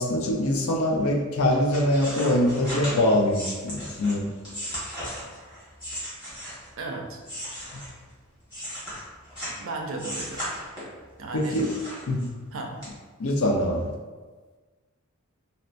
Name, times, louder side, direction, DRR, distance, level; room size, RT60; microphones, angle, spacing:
voice 1, 0.0-4.3 11.3-11.7 12.1-12.3 13.2-13.9, left 1 dB, 70° left, 1 dB, 0.5 m, -23 dB
sound 1, 1.5-6.8 7.2-9.6 10.0-11.0 11.4-12.5 12.8-12.9, equal, 20° left, 1.3 m, -36 dB
voice 2, 6.8-7.2 9.6-10.4 11.2-11.6 12.5-12.7, right 2 dB, 60° right, 1 dB, 0.5 m, -34 dB
4.1 x 2.1 x 2.5 m, 1.4 s
head